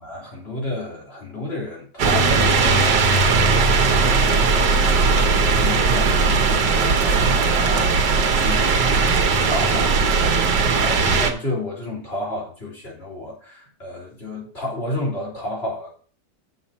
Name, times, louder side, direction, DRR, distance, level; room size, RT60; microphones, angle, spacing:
voice 1, 0.0-8.9 9.4-10.3 10.7-15.9, left 1 dB, 35° left, -4 dB, 3.6 m, -31 dB
sound 1, 2.0-11.3, right 4 dB, 80° right, 1.8 m, -18 dB
7.2 x 7.0 x 4.3 m, 0.42 s
omnidirectional pair, 1.8 m